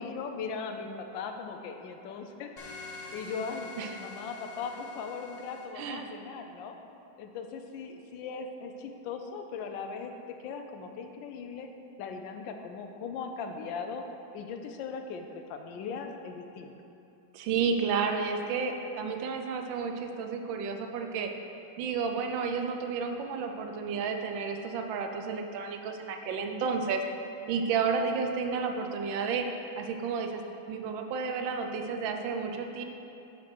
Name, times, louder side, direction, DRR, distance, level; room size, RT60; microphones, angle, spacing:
voice 1, 0.0-2.5 3.1-3.7 4.0-6.8 7.2-11.7 12.0-14.1 14.3-16.7, left 5 dB, 80° left, 5 dB, 1.3 m, -39 dB
sound 1, 2.6-5.7, left 3 dB, 45° left, 0.5 m, -45 dB
voice 2, 5.8-6.1 17.3-21.3 21.8-27.0 27.5-29.5 29.8-30.4 30.7-32.8, right 5 dB, 85° right, 4 dB, 1.4 m, -31 dB
7.3 x 4.4 x 6.0 m, 3.0 s
omnidirectional pair, 2.0 m